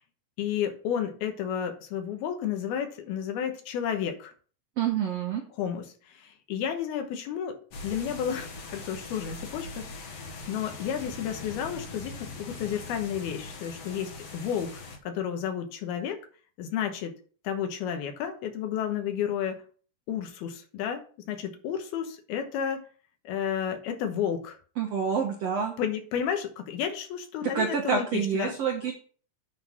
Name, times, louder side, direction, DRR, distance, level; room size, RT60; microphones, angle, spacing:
voice 1, 0.4-4.3 5.6-7.6 7.8-14.8 15.0-16.2 16.6-17.1 17.4-19.6 20.1-22.8 23.2-24.6 25.8-28.6, left 8 dB, 75° left, 5 dB, 3.0 m, -32 dB
voice 2, 4.8-5.4 24.8-25.7 27.4-28.9, right 7 dB, 80° right, 2 dB, 1.4 m, -27 dB
sound 1, 7.7-15.0, left 3 dB, 55° left, 1.9 m, -41 dB
9.8 x 4.0 x 6.0 m, 0.41 s
omnidirectional pair, 4.7 m